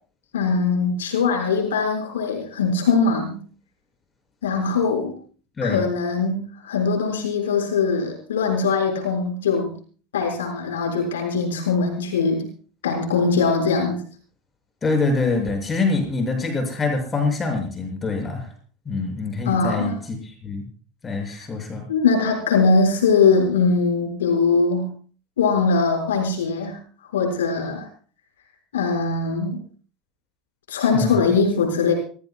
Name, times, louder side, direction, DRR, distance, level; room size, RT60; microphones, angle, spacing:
voice 1, 0.3-3.4 4.4-5.2 5.6-9.8 10.1-12.5 12.8-14.0 19.5-19.9 21.9-24.9 25.4-26.8 27.1-27.9 28.7-29.6 30.7-31.9, left 4 dB, 85° left, 1 dB, 5.7 m, -21 dB
voice 2, 14.8-18.5 18.9-20.7 21.0-21.8 30.9-31.2, left 3 dB, 25° left, 3 dB, 7.1 m, -25 dB
27.0 x 17.0 x 2.4 m, 0.41 s
hypercardioid pair, 90°, 0 cm